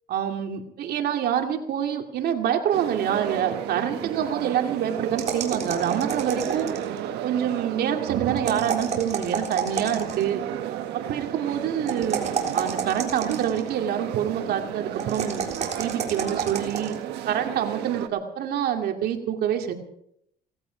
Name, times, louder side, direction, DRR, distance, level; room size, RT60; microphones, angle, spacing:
voice 1, 0.1-6.7 7.2-10.4 10.9-12.2 12.5-15.4 15.8-16.9 17.3-19.7, right 9 dB, 70° right, 4 dB, 2.5 m, -26 dB
sound 1, 2.7-18.1, right 11 dB, 85° right, 1.5 m, -33 dB
sound 2, 5.2-7.0 8.4-10.3 11.9-13.7 15.0-16.9, right 6 dB, 40° right, 3.8 m, -29 dB
18.0 x 15.5 x 5.1 m, 0.75 s
cardioid pair, 110°, 17 cm